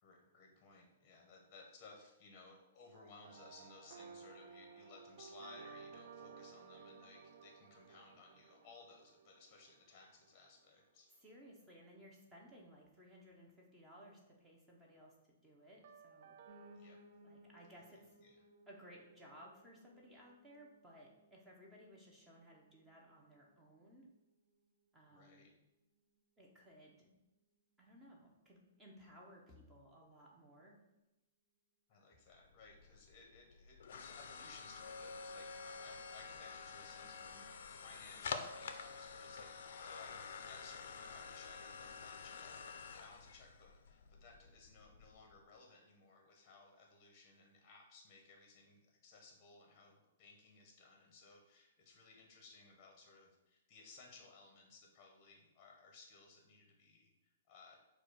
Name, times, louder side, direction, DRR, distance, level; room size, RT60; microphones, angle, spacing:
voice 1, 0.0-11.1 16.7-17.0 17.9-18.4 25.1-25.5 31.9-57.8, left 3 dB, 25° left, 1 dB, 0.8 m, -60 dB
sound 1, 3.2-10.4 15.8-16.8, right 5 dB, 50° right, 0.3 m, -56 dB
voice 2, 11.2-15.1 15.4-16.4 17.2-18.1 18.7-24.1 24.9-25.5 26.4-27.1 27.8-30.8, equal, 10° right, -2 dB, 0.7 m, -60 dB
Piano, 16.5-25.6 26.0-27.1 27.4-27.5 27.7-27.8 28.1-28.2 28.7-28.8, equal, 70° right, 0.7 m, -65 dB
sound 2, 32.3-45.4, left 5 dB, 65° left, 0.4 m, -49 dB
4.6 x 2.3 x 4.6 m, 0.97 s
hypercardioid pair, 165°, 0 cm